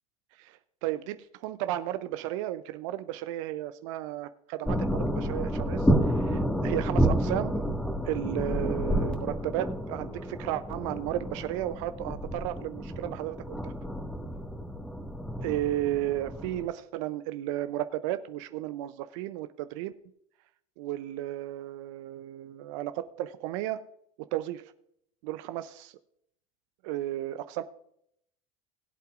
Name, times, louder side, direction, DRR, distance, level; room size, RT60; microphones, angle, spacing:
voice 1, 0.4-7.7 8.0-13.7 15.4-19.9 20.8-23.8 24.2-24.6 25.2-25.9 26.8-27.6, right 13 dB, 65° right, 11 dB, 0.6 m, -34 dB
sound 1, 4.6-16.6, equal, 5° left, 1.8 m, -30 dB
20.5 x 8.1 x 2.5 m, 0.71 s
hypercardioid pair, 75°, 18 cm